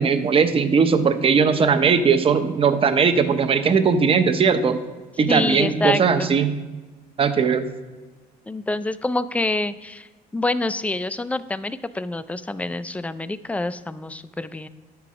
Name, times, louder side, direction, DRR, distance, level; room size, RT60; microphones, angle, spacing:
voice 1, 0.0-4.8 5.2-6.6 7.2-7.7, right 5 dB, 35° right, 9 dB, 0.8 m, -19 dB
voice 2, 5.3-6.3 8.5-10.1 10.3-14.7, left 2 dB, 10° left, 14 dB, 0.4 m, -26 dB
9.2 x 5.9 x 4.8 m, 1.3 s
cardioid pair, 110°, 17 cm